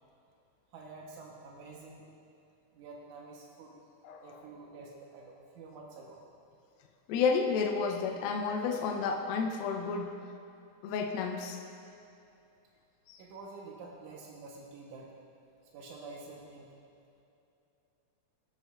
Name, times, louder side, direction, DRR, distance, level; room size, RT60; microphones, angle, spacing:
voice 1, 0.7-2.1 2.7-3.8 4.2-6.2 13.2-15.1 15.7-16.7, right 3 dB, 85° right, -2 dB, 1.7 m, -48 dB
voice 2, 7.1-10.1 10.8-11.6 13.1-13.2, left 5 dB, 80° left, 2 dB, 2.3 m, -31 dB
18.5 x 6.8 x 2.3 m, 2.7 s
omnidirectional pair, 4.7 m